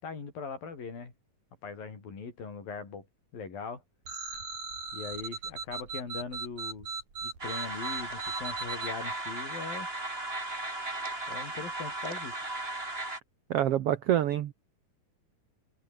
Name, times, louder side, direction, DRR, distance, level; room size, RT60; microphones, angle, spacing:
voice 1, 0.0-1.1 1.6-3.1 3.3-3.8 4.9-6.9 7.2-9.9 11.3-12.4, left 5 dB, 80° left, 7.3 m, -40 dB
sound 1, 4.1-8.9, right 5 dB, 55° right, 6.0 m, -38 dB
sound 2, 7.4-13.2, right 2 dB, 15° right, 4.5 m, -36 dB
voice 2, 13.5-14.5, right 11 dB, 75° right, 1.4 m, -26 dB
open air
omnidirectional pair, 4.0 m